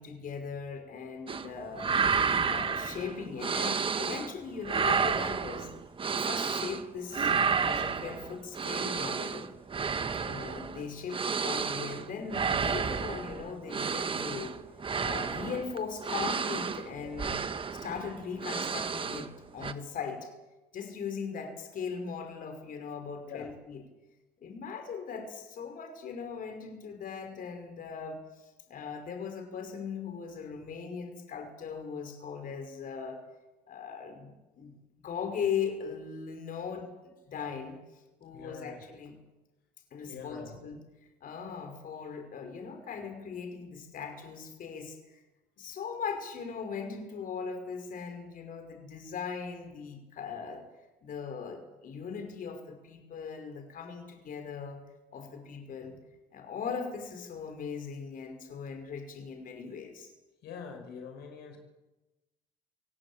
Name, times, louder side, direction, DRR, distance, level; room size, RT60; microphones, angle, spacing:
voice 1, 0.0-1.9 2.4-5.7 6.1-7.4 7.6-9.5 10.2-14.6 15.0-17.4 17.7-20.3 20.7-23.8 24.4-33.2 33.7-37.8 38.2-39.2 39.9-40.8 41.2-45.2 45.6-50.6 51.0-54.8 55.1-56.0 56.3-60.1, left 6 dB, 55° left, 6 dB, 5.5 m, -39 dB
sound 1, 1.3-1.5 1.7-4.3 4.6-6.8 7.1-19.3 19.6-19.7, right 5 dB, 30° right, 1.5 m, -31 dB
voice 2, 23.2-23.5 38.3-38.8 40.0-40.6 60.4-61.6, left 6 dB, 75° left, 4 dB, 5.2 m, -44 dB
26.5 x 18.0 x 9.0 m, 1.1 s
cardioid pair, 110°, 17 cm